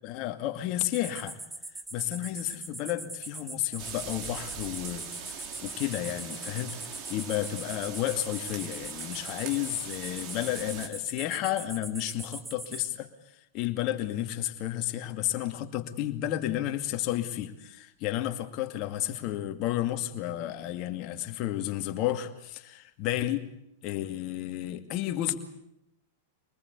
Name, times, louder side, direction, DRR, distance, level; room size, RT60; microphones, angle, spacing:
voice 1, 0.0-1.4 1.9-6.8 7.1-13.1 13.5-23.4 23.8-25.3, left 13 dB, 45° left, 6 dB, 2.4 m, -32 dB
sound 1, 0.9-12.9, right 2 dB, 10° right, 1.4 m, -42 dB
sound 2, 3.8-10.9, right 7 dB, 45° right, 3.7 m, -41 dB
25.0 x 20.0 x 8.4 m, 0.82 s
hypercardioid pair, 105°, 0 cm